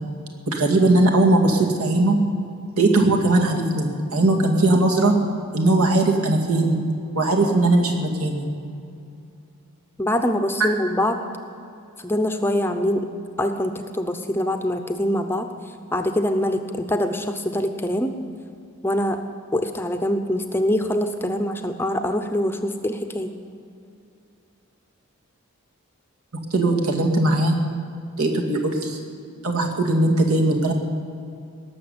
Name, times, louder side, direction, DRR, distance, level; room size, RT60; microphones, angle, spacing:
voice 1, 0.5-2.2 2.8-5.1 5.5-6.8 7.1-8.5 10.6-10.7 26.5-27.6 28.2-29.0 29.4-30.7, right 2 dB, 80° right, 1 dB, 2.2 m, -19 dB
voice 2, 10.0-11.2 12.0-13.1 13.4-15.5 15.9-18.1 18.8-19.2 19.5-23.3, left 1 dB, 10° left, 6 dB, 0.6 m, -24 dB
18.5 x 7.1 x 9.6 m, 2.5 s
head